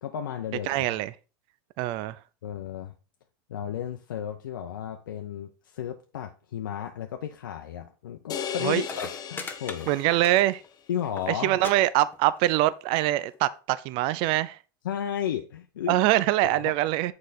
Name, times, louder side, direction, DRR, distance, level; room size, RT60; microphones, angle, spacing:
voice 1, 0.0-0.8 2.4-2.9 3.5-9.9 10.9-11.6 14.8-16.0 16.4-16.7, left 9 dB, 85° left, 0.6 m, -33 dB
voice 2, 0.7-1.1 1.8-2.2 8.6-8.8 9.9-10.6 11.4-14.6 15.9-17.1, right 15 dB, 55° right, 0.5 m, -24 dB
sound 1, 8.3-10.6, left 8 dB, 40° left, 0.8 m, -36 dB
sound 2, 8.5-8.6 8.8-10.7 11.0-11.3 11.6-11.7 12.0-12.5 13.3-13.4, left 4 dB, 20° left, 1.1 m, -38 dB
6.6 x 4.8 x 4.0 m
hypercardioid pair, 95°, 11 cm